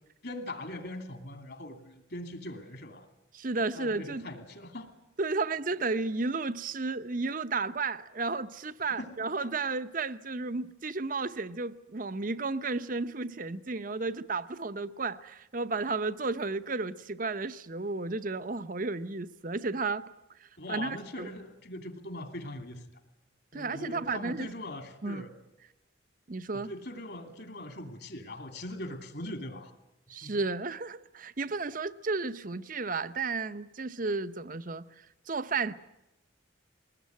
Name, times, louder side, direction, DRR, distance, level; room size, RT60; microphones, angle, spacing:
voice 1, 0.2-3.1 3.7-4.9 8.8-9.2 9.4-9.5 20.6-22.8 23.5-25.3 26.5-29.7 30.2-30.3, left 1 dB, 55° left, 2.7 m, -41 dB
voice 2, 3.3-4.3 5.2-20.1 20.4-21.3 23.5-24.5 25.0-25.2 26.3-26.7 30.1-35.7, right 3 dB, 45° right, 0.8 m, -33 dB
21.0 x 19.5 x 9.3 m
head